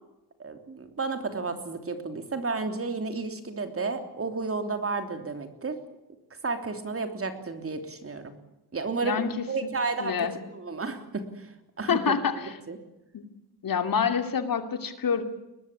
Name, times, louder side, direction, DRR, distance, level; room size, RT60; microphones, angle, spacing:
voice 1, 0.4-5.8 6.4-8.4 8.7-11.5 11.8-12.1 12.7-12.8, right 4 dB, 35° right, 7 dB, 3.3 m, -32 dB
voice 2, 9.0-9.4 10.0-10.3 11.9-12.5 13.1-13.3 13.6-15.2, left 6 dB, 60° left, 8 dB, 2.8 m, -27 dB
22.5 x 20.0 x 8.6 m, 0.94 s
wide cardioid pair, 130°, 39 cm